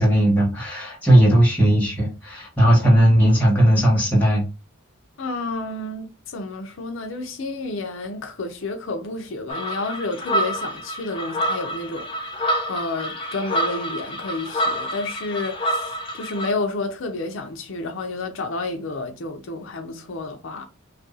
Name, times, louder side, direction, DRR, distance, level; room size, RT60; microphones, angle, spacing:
voice 1, 0.0-4.4, right 1 dB, 10° left, 1.5 m, -17 dB
voice 2, 5.2-20.6, left 3 dB, 70° left, 0.5 m, -30 dB
sound 1, 9.5-16.5, equal, 25° left, 0.7 m, -27 dB
2.7 x 2.5 x 3.8 m
head